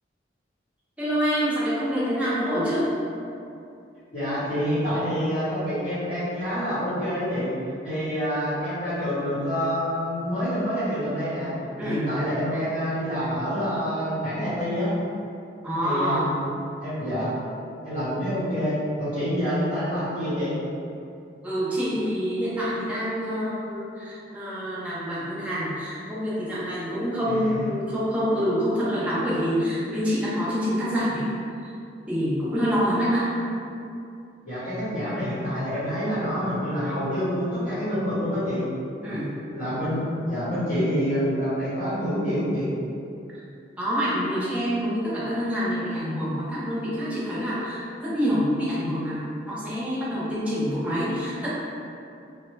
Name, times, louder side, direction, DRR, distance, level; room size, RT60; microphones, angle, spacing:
voice 1, 1.0-2.9 11.8-12.0 15.6-16.3 21.4-31.3 31.6-31.7 32.1-33.3 39.0-39.3 43.8-51.5, equal, 5° right, -9 dB, 0.6 m, -26 dB
voice 2, 4.1-7.5 7.8-11.5 11.8-14.9 15.8-16.5 16.8-17.3 17.8-20.5 27.3-27.6 34.4-38.6 39.1-42.7, equal, 55° left, -14 dB, 1.2 m, -27 dB
3.2 x 2.1 x 3.1 m, 2.6 s
head